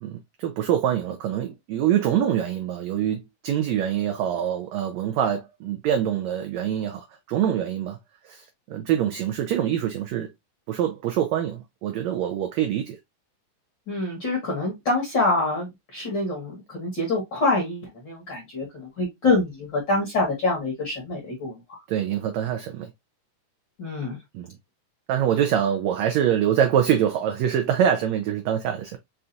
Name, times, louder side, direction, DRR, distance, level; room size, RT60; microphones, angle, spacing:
voice 1, 0.0-8.0 8.3-10.3 10.7-13.0 21.9-22.9 24.3-24.5 25.1-29.0, right 10 dB, 85° right, 1.5 m, -25 dB
voice 2, 13.9-21.8 23.8-24.2, left 2 dB, 55° left, 1.3 m, -26 dB
5.5 x 2.4 x 2.5 m
omnidirectional pair, 3.7 m